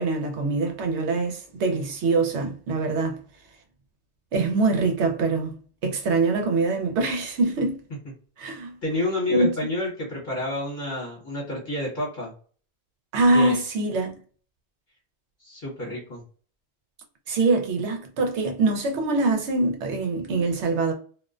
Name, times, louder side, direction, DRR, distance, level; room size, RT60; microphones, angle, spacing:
voice 1, 0.0-3.2 4.3-5.6 5.8-7.8 8.4-8.7 9.3-9.5 13.1-14.1 17.3-20.9, right 3 dB, 75° right, 0.9 m, -24 dB
voice 2, 8.8-12.3 13.3-13.6 15.4-16.2, left 2 dB, 45° left, 1.1 m, -29 dB
2.4 x 2.1 x 2.4 m
omnidirectional pair, 1.2 m